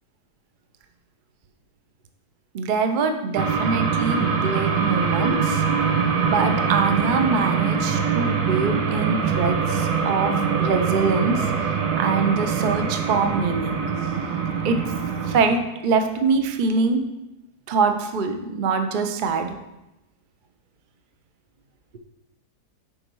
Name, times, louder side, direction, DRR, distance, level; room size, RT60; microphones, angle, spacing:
voice 1, 2.5-5.6 6.2-10.3 10.6-11.5 12.0-13.8 14.6-14.8 15.3-17.0 17.7-19.6, right 4 dB, 55° right, 7 dB, 0.5 m, -24 dB
sound 1, 3.4-15.4, right 6 dB, 70° right, 1.3 m, -23 dB
7.3 x 5.3 x 4.6 m, 0.94 s
omnidirectional pair, 1.7 m